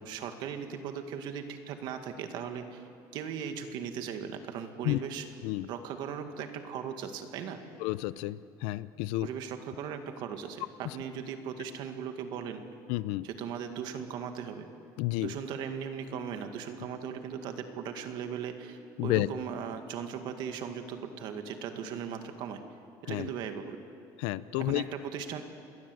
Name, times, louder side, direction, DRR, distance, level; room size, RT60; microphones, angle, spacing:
voice 1, 0.1-2.8 3.1-5.3 5.7-7.6 9.2-12.6 13.2-14.7 15.2-22.6 23.0-23.8 24.6-25.4, right 7 dB, 55° right, 6 dB, 2.0 m, -38 dB
voice 2, 7.8-9.3 10.8-11.0 12.9-13.3 15.0-15.3 19.0-19.3 23.1-23.3 24.2-24.8, left 18 dB, 80° left, 16 dB, 0.7 m, -31 dB
sound 1, 16.3-22.5, right 1 dB, 5° left, 5.4 m, -59 dB
28.0 x 21.0 x 7.9 m, 2.5 s
cardioid pair, 165°, 9 cm